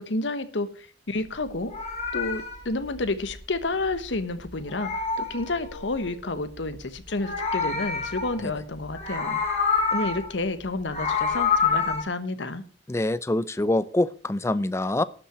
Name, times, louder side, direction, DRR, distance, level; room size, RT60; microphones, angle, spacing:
voice 1, 0.0-1.7 2.1-9.6 9.9-12.6, left 2 dB, 80° left, 1.2 m, -30 dB
Meow, 1.5-4.2 4.5-6.1 7.0-8.6 8.9-10.3 10.7-12.0, left 5 dB, 35° left, 3.5 m, -28 dB
voice 2, 12.9-15.0, left 1 dB, 15° left, 0.5 m, -25 dB
12.0 x 5.7 x 7.9 m
head